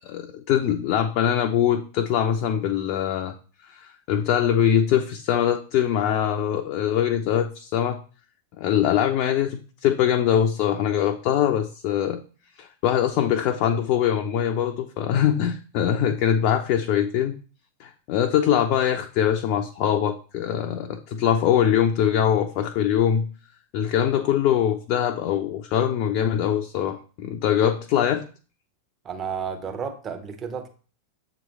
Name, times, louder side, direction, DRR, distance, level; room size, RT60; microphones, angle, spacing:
voice 1, 0.0-3.3 3.7-8.0 8.6-12.2 12.6-17.3 17.8-23.3 23.7-28.2, left 9 dB, 45° left, 5 dB, 0.5 m, -23 dB
voice 2, 29.0-30.7, right 6 dB, 25° right, 6 dB, 1.0 m, -32 dB
7.5 x 3.2 x 4.1 m, 0.38 s
figure-of-eight pair, 90°, 0 cm